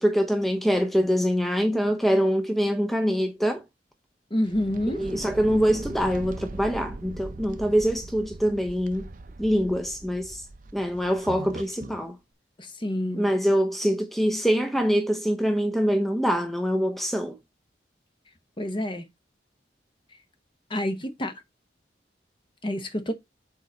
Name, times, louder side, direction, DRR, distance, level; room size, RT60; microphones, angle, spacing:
voice 1, 0.0-3.6 5.0-9.1 9.4-10.4 10.7-12.2 13.1-17.4, equal, ahead, 0.5 m, -24 dB
voice 2, 4.3-5.0 12.6-13.3 18.6-19.1 20.7-21.3 22.6-23.1, left 1 dB, 30° left, 0.9 m, -28 dB
sound 1, 4.4-12.0, right 2 dB, 50° right, 0.6 m, -40 dB
6.4 x 3.9 x 4.1 m
head